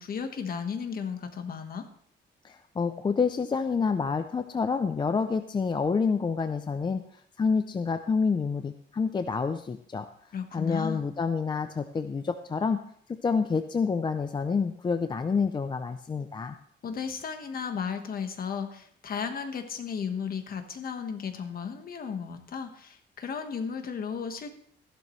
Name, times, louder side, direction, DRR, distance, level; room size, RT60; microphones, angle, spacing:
voice 1, 0.0-1.9 10.3-11.0 16.8-24.5, left 6 dB, 50° left, 6 dB, 1.4 m, -34 dB
voice 2, 2.4-7.0 7.4-10.1 10.5-12.8 13.1-16.6, left 5 dB, 25° left, 9 dB, 0.5 m, -28 dB
14.5 x 12.0 x 3.2 m, 0.62 s
cardioid pair, 145°, 19 cm